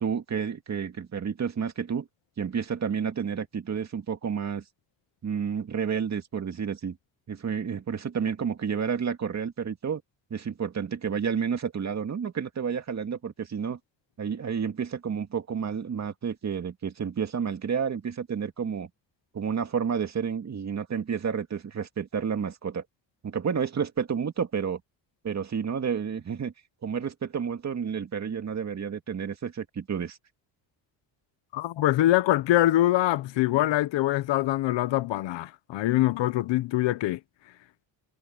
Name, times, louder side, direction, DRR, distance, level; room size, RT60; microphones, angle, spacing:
voice 1, 0.0-2.1 2.4-4.6 5.2-7.0 7.3-10.0 10.3-13.8 14.2-18.9 19.3-22.8 23.2-24.8 25.2-26.5 26.8-30.2, right 7 dB, 40° right, 2.3 m, -30 dB
voice 2, 31.5-37.2, left 15 dB, 80° left, 0.9 m, -24 dB
cardioid pair, 130°, 44 cm